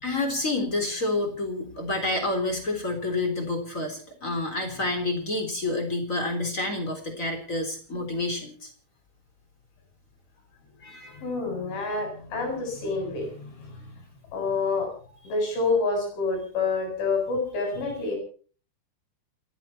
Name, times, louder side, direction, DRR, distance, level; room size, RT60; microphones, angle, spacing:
voice 1, 0.0-8.7 10.8-11.2 17.7-17.8, left 2 dB, 20° left, 4 dB, 3.3 m, -29 dB
voice 2, 11.2-13.9 14.3-14.9 15.2-18.2, left 3 dB, 75° left, 2 dB, 9.7 m, -28 dB
29.0 x 11.5 x 4.4 m, 0.42 s
omnidirectional pair, 5.5 m